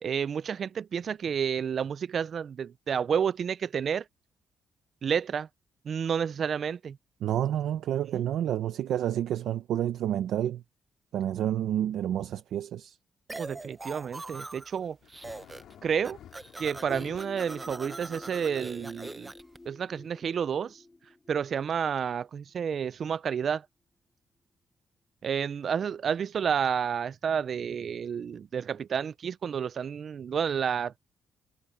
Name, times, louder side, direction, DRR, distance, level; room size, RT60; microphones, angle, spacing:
voice 1, 0.0-4.0 5.0-5.5 5.9-7.0 8.1-8.2 13.3-15.0 15.8-16.2 16.6-19.3 19.7-20.8 21.3-23.6 25.2-31.0, right 7 dB, 45° right, 0.3 m, -30 dB
voice 2, 7.2-10.6 11.1-13.0, right 11 dB, 80° right, 0.7 m, -29 dB
sound 1, 13.3-14.8 15.1-15.7 16.0-19.6, right 2 dB, 15° right, 0.7 m, -42 dB
sound 2, 15.0-17.2 17.6-17.7 18.0-18.1 18.8-18.9 19.5-19.6 20.4-20.5, left 10 dB, 80° left, 3.4 m, -51 dB
sound 3, 16.9-22.4, left 2 dB, 15° left, 3.1 m, -49 dB
wide cardioid pair, 175°, 0 cm